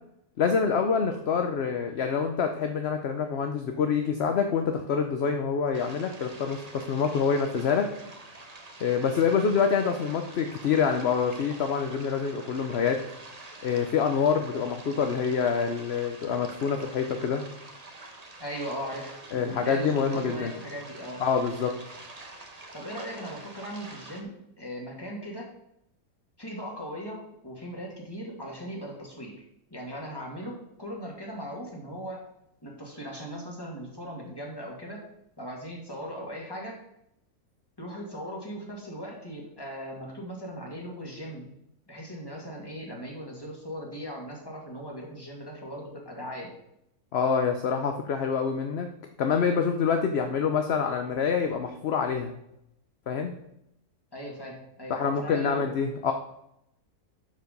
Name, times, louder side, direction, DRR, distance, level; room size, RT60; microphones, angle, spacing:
voice 1, 0.4-7.9 8.8-13.0 13.6-17.4 19.3-20.5 21.2-21.7 47.1-48.9 49.2-52.3 53.1-53.3 54.9-56.1, left 6 dB, 55° left, 5 dB, 0.9 m, -26 dB
sound 1, 5.7-24.2, right 2 dB, 30° right, 1.2 m, -46 dB
voice 2, 18.4-21.2 22.7-25.5 26.4-29.4 29.7-32.2 32.6-35.0 35.4-36.8 37.8-41.5 41.9-46.5 54.1-55.7, equal, 15° left, -2 dB, 2.3 m, -38 dB
12.0 x 4.9 x 5.3 m, 0.79 s
omnidirectional pair, 1.6 m